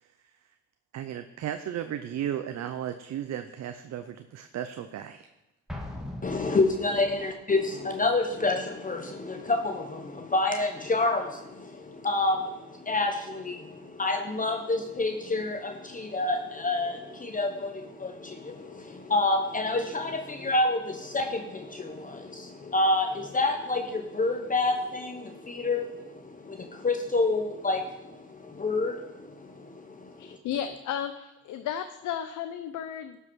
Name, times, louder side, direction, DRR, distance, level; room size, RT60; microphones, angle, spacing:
voice 1, 0.9-5.3, right 10 dB, 60° right, 9 dB, 0.7 m, -35 dB
Explosion, 5.7-7.3, left 1 dB, ahead, 1.9 m, -40 dB
voice 2, 6.2-30.4, left 2 dB, 25° left, 5 dB, 1.0 m, -28 dB
voice 3, 30.2-33.2, left 9 dB, 80° left, 9 dB, 0.7 m, -34 dB
12.0 x 5.6 x 6.2 m, 0.98 s
cardioid pair, 90°, 30 cm